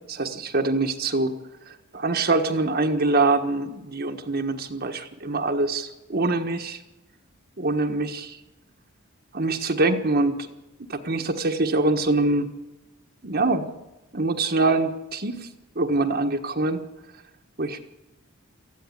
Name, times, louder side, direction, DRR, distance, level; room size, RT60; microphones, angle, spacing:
voice 1, 0.1-1.4 1.7-6.8 7.6-8.4 9.3-10.5 10.8-12.5 13.2-13.7 14.1-15.5 15.7-16.8 17.6-17.8, right 2 dB, 45° right, 4 dB, 1.4 m, -24 dB
19.5 x 14.5 x 9.8 m, 1.0 s
head